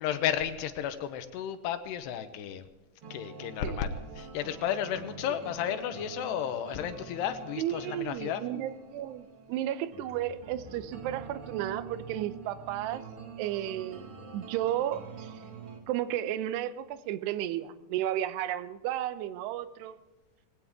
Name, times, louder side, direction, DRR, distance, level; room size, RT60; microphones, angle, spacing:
voice 1, 0.0-2.7 3.1-8.4, left 9 dB, 75° left, 2.9 m, -33 dB
sound 1, 3.0-15.8, right 5 dB, 50° right, 1.6 m, -46 dB
voice 2, 7.6-13.0 13.4-14.1 14.3-15.3 15.9-20.0, right 12 dB, 80° right, 2.7 m, -33 dB
20.0 x 17.0 x 3.6 m
omnidirectional pair, 5.1 m